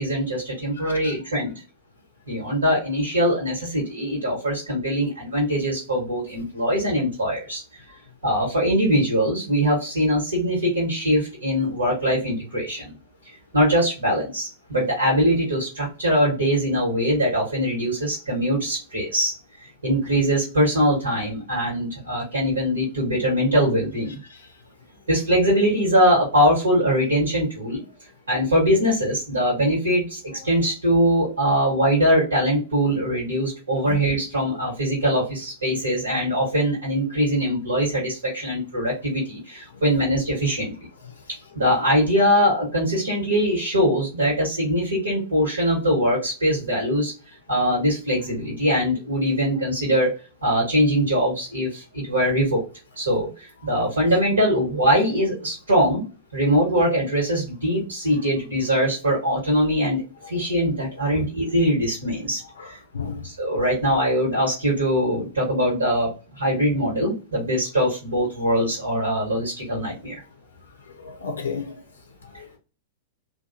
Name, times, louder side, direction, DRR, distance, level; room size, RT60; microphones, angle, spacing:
voice 1, 0.0-1.5 2.3-7.6 8.2-12.9 13.5-24.2 25.1-27.8 28.3-40.9 41.5-50.1 50.4-52.6 52.9-56.0 56.3-62.8 63.2-70.2, equal, 80° right, 1.3 m, -22 dB
voice 2, 0.8-1.1 33.9-34.0 61.1-61.2 62.6-62.7 62.9-63.3 71.0-71.7 72.3-72.6, left 5 dB, 80° left, 0.5 m, -32 dB
2.8 x 2.3 x 2.6 m
figure-of-eight pair, 100°, 0 cm